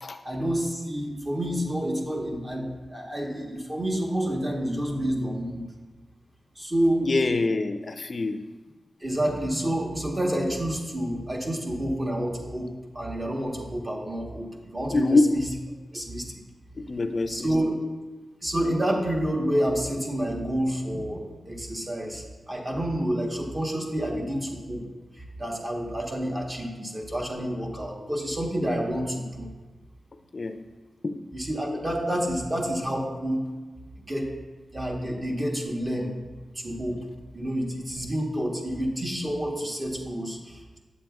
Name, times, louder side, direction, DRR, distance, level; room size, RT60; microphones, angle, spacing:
voice 1, 0.2-5.6 6.6-7.1 9.0-15.4 15.9-16.4 17.3-17.7 18.4-24.8 25.2-29.5 31.3-33.4 34.0-34.3 34.7-36.1 36.5-37.0 37.3-40.8, right 1 dB, 25° right, -1 dB, 1.1 m, -29 dB
voice 2, 7.0-8.4 14.9-15.2 16.8-17.5 30.3-30.6 31.0-31.2, left 3 dB, 45° left, 8 dB, 0.4 m, -25 dB
8.4 x 7.4 x 2.3 m, 1.3 s
wide cardioid pair, 90°, 0 cm